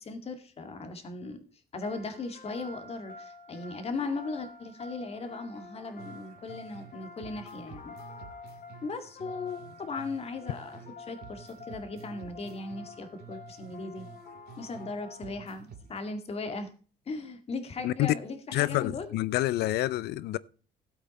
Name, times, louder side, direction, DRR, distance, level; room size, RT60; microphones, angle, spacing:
voice 1, 0.0-1.4 1.7-8.0 8.8-14.1 14.6-16.7 17.1-19.1, left 3 dB, 35° left, 2.1 m, -38 dB
sound 1, 1.8-15.7, left 3 dB, 55° left, 3.2 m, -48 dB
sound 2, 6.0-6.9 7.2-10.9 11.2-14.9 15.2-16.0, right 7 dB, 70° right, 2.0 m, -50 dB
voice 2, 17.8-18.1 18.5-20.4, left 16 dB, 75° left, 0.6 m, -27 dB
13.0 x 8.1 x 4.2 m
cardioid pair, 110°, 17 cm